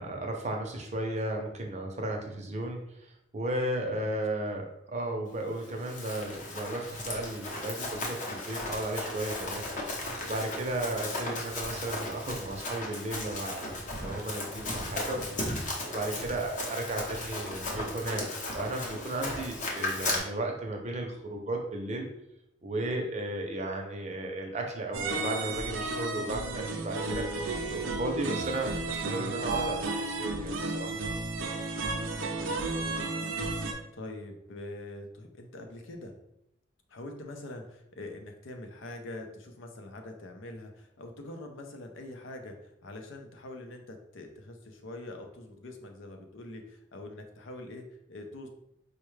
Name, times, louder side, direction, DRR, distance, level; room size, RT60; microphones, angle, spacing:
voice 1, 0.0-9.7 10.2-15.5 15.8-22.1 22.6-31.0, right 1 dB, 35° right, 2 dB, 0.6 m, -35 dB
Run, 5.6-20.2, left 2 dB, 40° left, 0.7 m, -36 dB
voice 2, 19.8-20.3 32.2-36.2 36.9-48.5, left 2 dB, 80° left, 4 dB, 0.6 m, -44 dB
sound 1, 24.9-33.7, right 2 dB, 85° right, 0.5 m, -33 dB
4.6 x 2.2 x 3.2 m, 0.79 s
head